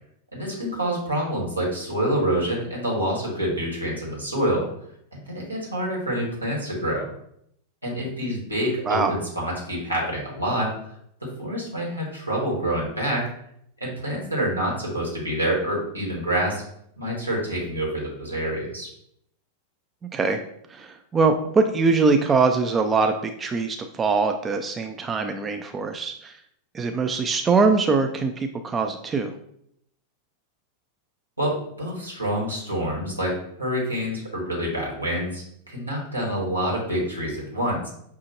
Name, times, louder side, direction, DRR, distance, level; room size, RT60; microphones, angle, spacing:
voice 1, 0.3-4.7 5.3-7.1 7.8-10.7 11.2-13.3 13.8-16.6 17.0-18.9 31.4-37.9, equal, 85° right, -3 dB, 1.3 m, -27 dB
voice 2, 20.7-26.3 26.7-29.3, right 4 dB, 20° right, 6 dB, 0.3 m, -22 dB
5.7 x 2.4 x 2.7 m, 0.71 s
figure-of-eight pair, 90°, 0 cm